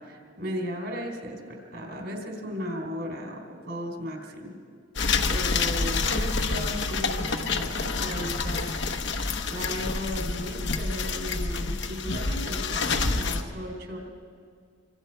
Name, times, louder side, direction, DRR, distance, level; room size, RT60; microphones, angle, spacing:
voice 1, 0.0-4.5 5.3-8.7 9.5-14.0, equal, 65° right, 1 dB, 3.5 m, -35 dB
sound 1, 5.0-13.4, left 4 dB, 65° left, 1.0 m, -28 dB
26.0 x 25.5 x 4.6 m, 2.2 s
head